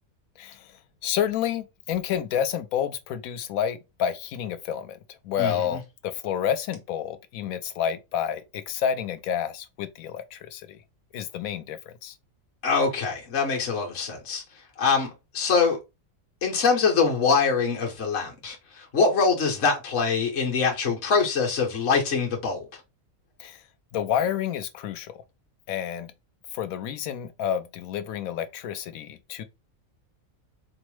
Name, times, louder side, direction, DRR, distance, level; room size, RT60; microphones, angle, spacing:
voice 1, 0.4-0.7 1.0-5.0 5.2-10.8 11.1-12.1 23.4-23.6 23.9-25.2 25.7-26.1 26.5-29.4, left 9 dB, 90° left, 1.0 m, -29 dB
voice 2, 5.4-5.8 12.6-14.4 14.8-15.8 16.4-22.6, left 5 dB, 55° left, 1.2 m, -24 dB
4.4 x 2.0 x 3.1 m
omnidirectional pair, 1.4 m